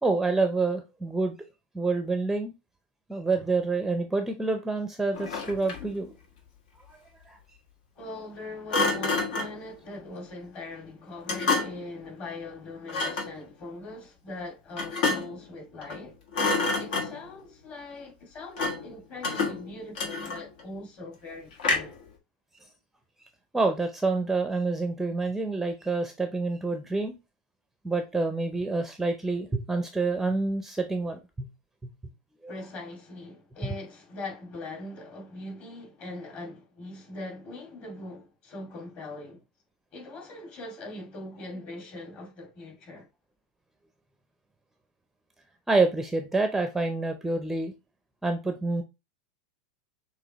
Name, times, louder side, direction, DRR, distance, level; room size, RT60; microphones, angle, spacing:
voice 1, 0.0-1.4 1.7-2.5 3.1-6.1 6.9-7.0 7.3-7.4 23.5-27.1 27.8-31.5 32.4-32.5 45.7-47.7 48.2-48.8, right 3 dB, 5° right, 0.5 m, -27 dB
Thump thud, 5.1-6.0 8.7-9.6 11.3-11.9 12.9-13.4 14.8-15.4 15.8-16.0 16.3-17.3 18.6-18.9 19.2-20.6 21.6-22.1, left 3 dB, 80° left, 1.6 m, -28 dB
voice 2, 7.9-16.2 16.4-22.0 32.5-39.4 39.9-43.1, left 2 dB, 40° left, 2.2 m, -41 dB
6.1 x 2.9 x 2.9 m
supercardioid pair, 130°, 5 cm